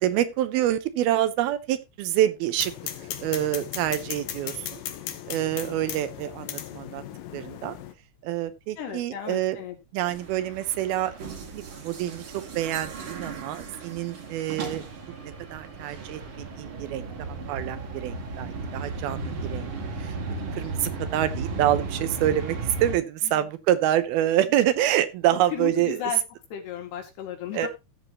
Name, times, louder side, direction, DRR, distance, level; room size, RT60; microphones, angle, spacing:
voice 1, 0.0-2.7 3.2-4.8 5.3-7.0 7.3-7.8 8.2-9.6 9.9-11.1 11.5-14.8 15.2-17.1 17.5-19.7 20.0-20.2 20.5-26.0 27.5-27.7, right 12 dB, 80° right, 2.6 m, -26 dB
sound 1, 2.6-7.9, left 11 dB, 70° left, 2.3 m, -37 dB
voice 2, 8.8-9.8 23.2-23.5 24.5-24.6 25.3-26.2 26.5-27.7, left 9 dB, 85° left, 4.2 m, -34 dB
sound 2, 10.1-23.0, right 3 dB, 45° right, 1.9 m, -35 dB
14.5 x 7.7 x 3.0 m
omnidirectional pair, 4.6 m